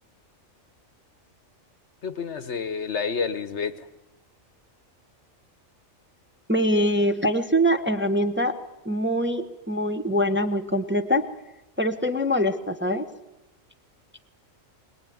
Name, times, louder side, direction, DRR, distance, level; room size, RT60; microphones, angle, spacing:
voice 1, 2.0-3.9, left 5 dB, 60° left, 12 dB, 1.3 m, -29 dB
voice 2, 6.5-8.5 8.8-11.2 11.8-13.0, equal, 10° right, 5 dB, 1.1 m, -23 dB
23.0 x 20.0 x 9.4 m, 0.96 s
omnidirectional pair, 1.4 m